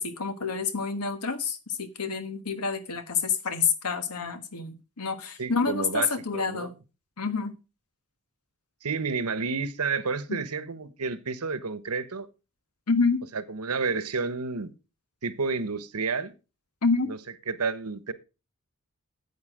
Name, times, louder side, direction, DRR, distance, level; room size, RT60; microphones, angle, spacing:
voice 1, 0.0-6.7 7.2-7.5 10.3-10.4 12.9-13.2 16.8-17.1, left 5 dB, 90° left, 1.5 m, -28 dB
voice 2, 5.4-6.7 8.8-12.3 13.3-14.7 15.2-16.3 17.1-17.2 17.5-18.1, right 4 dB, 90° right, 1.1 m, -30 dB
9.7 x 8.3 x 4.9 m
head